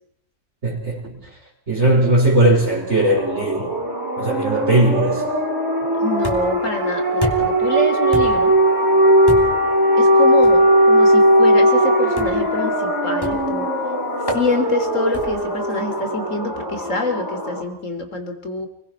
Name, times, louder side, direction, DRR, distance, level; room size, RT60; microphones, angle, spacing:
voice 1, 0.6-1.2 1.7-3.7 4.2-5.2, right 1 dB, 45° right, -3 dB, 5.0 m, -18 dB
sound 1, 2.8-17.6, equal, 10° right, 3.9 m, -18 dB
voice 2, 6.0-8.5 9.9-13.7 14.3-18.7, left 2 dB, 50° left, 7 dB, 3.7 m, -26 dB
sound 2, 6.2-6.7 7.2-7.7 8.1-8.6 9.3-9.7 10.4-10.6 12.2-12.5 13.2-13.6 14.3-14.5 15.1-15.5, left 1 dB, 15° left, 3.0 m, -29 dB
28.5 x 22.0 x 6.0 m, 0.74 s
omnidirectional pair, 1.7 m